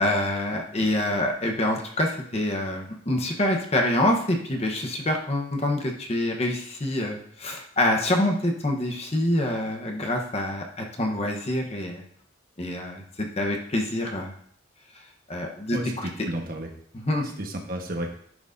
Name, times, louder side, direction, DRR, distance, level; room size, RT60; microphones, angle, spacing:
voice 1, 0.0-12.0 12.6-14.3 15.3-16.1 17.0-17.4, left 1 dB, 35° left, 2 dB, 0.9 m, -26 dB
voice 2, 15.7-16.7 17.4-18.1, right 1 dB, 50° right, 1 dB, 1.2 m, -32 dB
10.5 x 6.0 x 2.6 m, 0.64 s
head